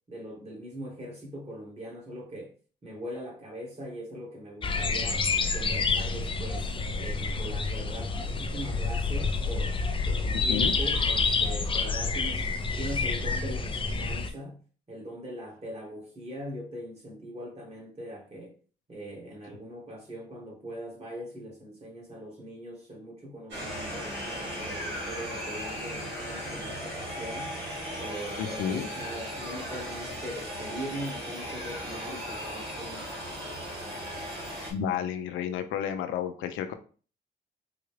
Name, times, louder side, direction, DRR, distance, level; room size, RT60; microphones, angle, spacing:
voice 1, 0.1-2.5 2.8-5.2 5.5-9.8 10.1-12.5 12.8-14.6 14.9-18.5 18.9-27.5 28.0-33.2, equal, 30° right, 1.9 m, -41 dB
sound 1, 4.6-14.3, left 4 dB, 25° left, 0.5 m, -28 dB
sound 2, 23.5-34.7, equal, 65° right, 1.5 m, -37 dB
voice 2, 28.4-28.9 34.7-36.7, left 9 dB, 90° left, 0.5 m, -31 dB
4.0 x 2.3 x 3.2 m
cardioid pair, 90°, 20 cm